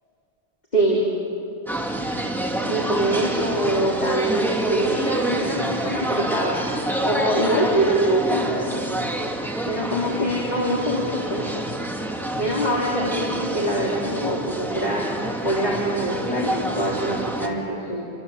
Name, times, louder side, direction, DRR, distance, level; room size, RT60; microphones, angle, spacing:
voice 1, 0.7-1.0 2.6-6.6 7.0-8.8 9.6-11.7 12.4-15.1 15.4-18.0, right 1 dB, 45° left, -4 dB, 3.6 m, -24 dB
sound 1, 1.7-17.5, right 1 dB, ahead, 2.5 m, -28 dB
29.0 x 24.0 x 8.0 m, 2.7 s
omnidirectional pair, 1.0 m